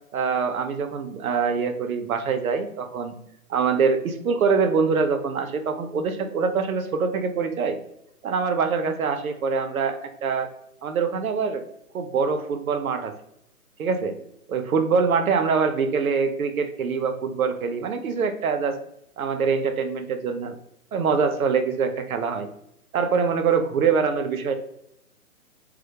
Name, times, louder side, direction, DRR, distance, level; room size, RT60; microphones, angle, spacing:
voice 1, 0.1-3.2 3.5-7.8 8.2-10.5 10.8-11.6 11.9-13.1 13.8-14.2 14.5-18.8 19.2-20.6 20.9-22.5 22.9-24.6, right 5 dB, 65° right, 7 dB, 0.5 m, -24 dB
2.1 x 2.1 x 2.8 m, 0.78 s
hypercardioid pair, 160°, 46 cm